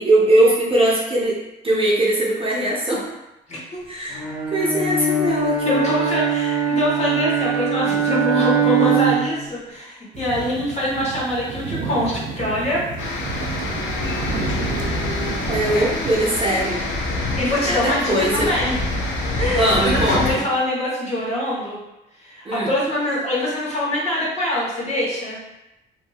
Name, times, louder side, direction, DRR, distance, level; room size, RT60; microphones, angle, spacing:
voice 1, 0.0-1.4 1.6-3.0 3.9-4.2 4.5-5.9 15.5-16.8 17.7-18.5 19.5-20.4 22.4-22.7, right 1 dB, 30° right, -5 dB, 0.7 m, -20 dB
Bowed string instrument, 4.1-9.4, right 6 dB, 5° right, 1.4 m, -21 dB
voice 2, 5.6-12.8 17.4-18.8 19.4-21.8 22.2-25.4, left 1 dB, 35° left, -6 dB, 1.2 m, -24 dB
sound 1, 10.1-16.2, right 5 dB, 70° right, 0.5 m, -31 dB
sound 2, 13.0-20.3, left 2 dB, 70° left, 0.7 m, -26 dB
2.6 x 2.6 x 2.4 m, 0.93 s
cardioid pair, 90°, 20 cm